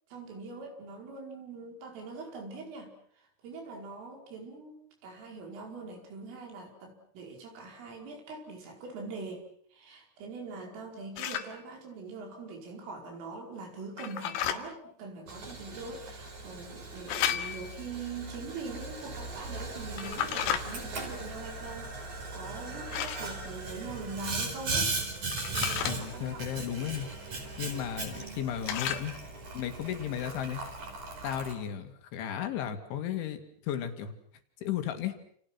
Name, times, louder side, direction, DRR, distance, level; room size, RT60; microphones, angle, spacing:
voice 1, 0.1-2.9 3.2-4.8 5.0-9.4 9.7-24.9 25.5-26.4 28.1-28.4, right 3 dB, 90° right, 2 dB, 7.6 m, -43 dB
sound 1, 11.2-11.5 14.0-14.6 17.1-17.8 20.0-20.6 22.9-23.3 25.3-26.0 28.7-29.1, left 10 dB, 90° left, 4.4 m, -32 dB
Boiling, 15.3-31.5, right 3 dB, 40° right, 5.8 m, -38 dB
voice 2, 25.9-27.1 27.6-29.2 29.5-30.6 31.2-34.1 34.6-35.2, left 10 dB, 70° left, 7 dB, 4.8 m, -34 dB
29.5 x 29.0 x 6.1 m, 0.64 s
omnidirectional pair, 5.6 m